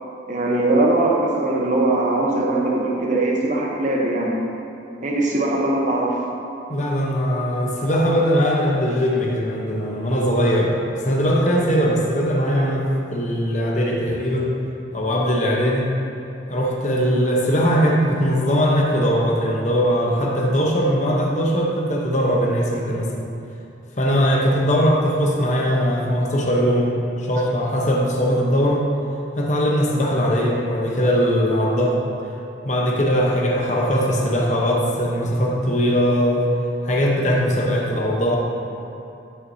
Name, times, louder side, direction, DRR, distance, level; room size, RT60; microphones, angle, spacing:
voice 1, 0.3-4.4 5.0-6.2, right 2 dB, 40° right, -1 dB, 0.9 m, -20 dB
voice 2, 6.7-10.7 11.0-12.8 13.1-14.5 14.9-15.9 16.5-23.1 24.0-26.9 27.2-28.8 29.4-32.0 32.6-36.5 36.8-38.4, equal, 40° left, -2 dB, 0.9 m, -20 dB
9.1 x 6.1 x 2.7 m, 2.9 s
head